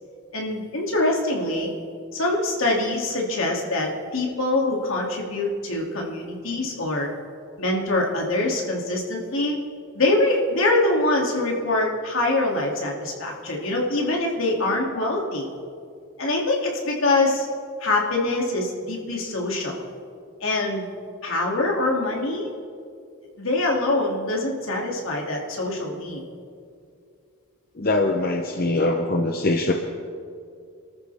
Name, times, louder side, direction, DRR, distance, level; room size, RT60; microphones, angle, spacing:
voice 1, 0.3-1.7 2.1-7.1 7.6-9.6 9.9-15.5 16.2-17.5 17.8-19.8 20.4-20.9 21.2-22.5 23.4-26.2, left 2 dB, 75° left, -1 dB, 2.7 m, -24 dB
voice 2, 27.8-29.7, left 2 dB, 45° left, 3 dB, 0.8 m, -22 dB
27.0 x 13.5 x 3.5 m, 2.3 s
head